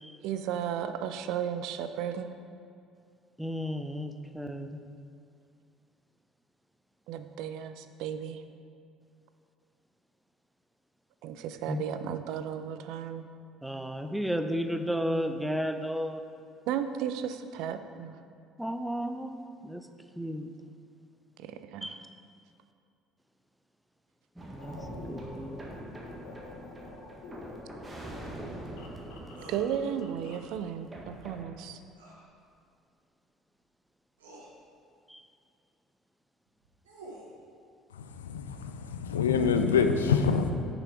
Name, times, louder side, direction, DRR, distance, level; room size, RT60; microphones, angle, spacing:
voice 1, 0.2-2.3 7.1-8.4 11.2-13.3 16.7-18.2 21.4-22.0 29.5-31.8, right 9 dB, 60° right, 10 dB, 0.4 m, -34 dB
voice 2, 3.4-4.8 11.7-11.8 13.6-16.2 18.6-19.3 19.6-19.8 20.2-20.5 21.8-22.0 24.4-24.8 25.1-25.6 35.1-35.2, equal, 5° right, 7 dB, 0.6 m, -33 dB
sound 1, 24.4-31.4, right 1 dB, 20° right, 1.5 m, -44 dB
sound 2, 24.6-30.5, left 3 dB, 65° left, 0.9 m, -47 dB
sound 3, 29.4-29.6 31.9-32.2 33.6-33.7 34.2-34.5 36.5-37.3, right 1 dB, 80° right, 1.2 m, -48 dB
voice 3, 37.9-40.5, left 6 dB, 80° left, 7 dB, 0.4 m, -26 dB
6.6 x 6.1 x 4.7 m, 2.5 s
figure-of-eight pair, 55°, 0 cm